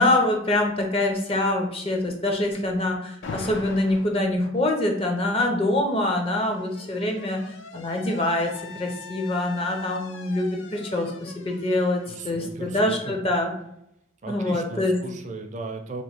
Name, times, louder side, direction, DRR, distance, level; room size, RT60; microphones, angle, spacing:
voice 1, 0.0-7.4 7.7-13.5 14.3-15.0, left 1 dB, 30° left, 2 dB, 0.5 m, -25 dB
Alarm, 3.2-4.2 5.4-13.1, left 4 dB, 75° left, 0.4 m, -43 dB
voice 2, 12.1-13.2 14.2-16.0, right 3 dB, 40° right, 5 dB, 0.4 m, -37 dB
2.9 x 2.6 x 4.3 m, 0.77 s
head